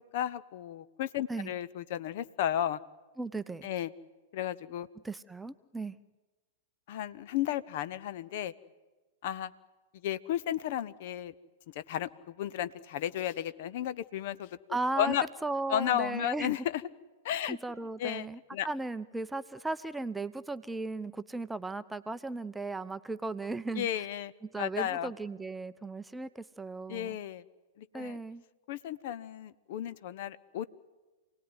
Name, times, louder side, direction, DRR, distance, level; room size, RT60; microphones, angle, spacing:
voice 1, 0.0-2.8 3.6-3.9 4.3-4.9 6.9-8.5 9.2-9.5 10.0-11.3 11.7-15.3 15.7-16.8 17.2-17.6 18.0-18.7 23.7-24.3 24.6-25.1 26.9-27.4 27.8-28.2 28.7-30.7, left 11 dB, 45° left, 16 dB, 0.9 m, -33 dB
voice 2, 3.2-3.7 5.0-6.0 14.7-15.2 15.4-16.5 17.5-23.9 24.4-27.2 27.9-28.4, right 3 dB, 5° right, 12 dB, 0.7 m, -36 dB
28.0 x 18.5 x 9.5 m, 1.2 s
figure-of-eight pair, 100°, 0 cm